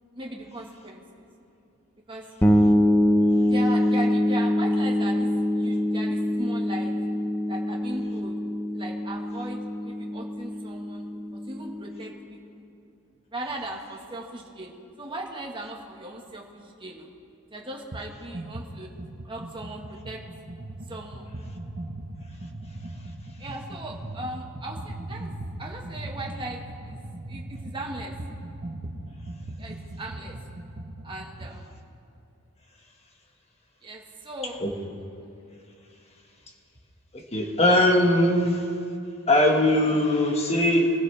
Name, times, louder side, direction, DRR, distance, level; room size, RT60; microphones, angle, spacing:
voice 1, 0.1-1.2 2.1-2.2 3.4-5.3 5.6-7.0 7.5-8.3 8.7-11.0 11.3-12.6 13.3-17.1 17.5-18.9 19.2-20.2 20.9-21.3 23.4-27.0 27.3-28.1 29.6-30.4 31.0-31.7 33.8-34.6, right 1 dB, 20° right, 0 dB, 1.6 m, -38 dB
sound 1, 2.4-12.0, left 1 dB, 10° left, 0.7 m, -24 dB
sound 2, 17.9-18.1 18.3-31.6, right 1 dB, 40° right, 1.1 m, -39 dB
voice 2, 37.1-38.6 39.3-40.9, left 1 dB, 30° left, 1 dB, 1.7 m, -20 dB
24.0 x 15.0 x 3.5 m, 2.5 s
head